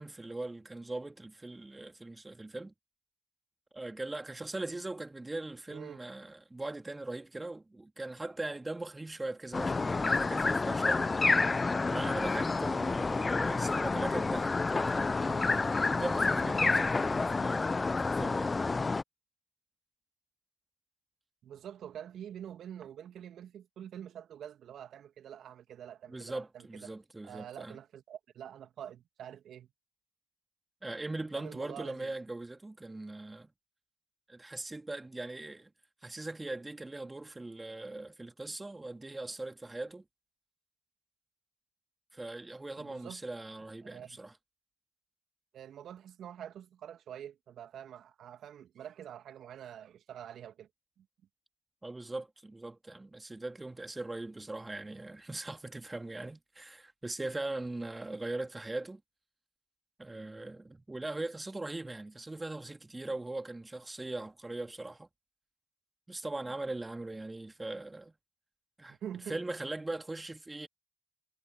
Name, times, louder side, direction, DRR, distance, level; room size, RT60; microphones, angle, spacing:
voice 1, 0.0-2.7 3.7-11.1 11.9-18.5 26.1-27.8 30.8-33.5 34.3-35.7 36.0-40.0 42.1-44.3 51.8-59.0 60.0-65.1 66.1-68.1 68.8-69.0 69.3-70.7, right 2 dB, 20° right, 2.6 m, -40 dB
voice 2, 5.7-6.0 21.4-26.7 27.2-29.7 31.3-32.1 42.8-43.2 43.8-44.2 45.5-50.7 51.0-51.1 68.9-69.4, right 10 dB, 65° right, 2.5 m, -46 dB
sound 1, 9.5-19.0, left 3 dB, 30° left, 0.8 m, -29 dB
hypercardioid pair, 45°, 0 cm